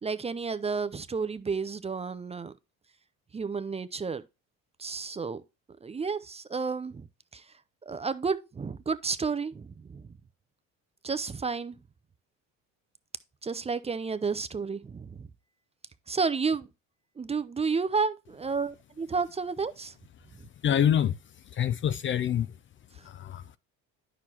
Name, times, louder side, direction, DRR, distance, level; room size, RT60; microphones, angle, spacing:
voice 1, 0.0-2.5 3.3-4.2 4.8-5.4 5.8-7.1 7.3-7.4 7.9-10.1 11.0-11.8 13.4-15.3 16.1-16.7 17.2-19.9, right 5 dB, 20° right, 0.5 m, -31 dB
voice 2, 20.6-21.2 21.5-22.5 23.0-23.4, left 9 dB, 35° left, 0.4 m, -26 dB
9.6 x 6.2 x 2.8 m
cardioid pair, 105°, 34 cm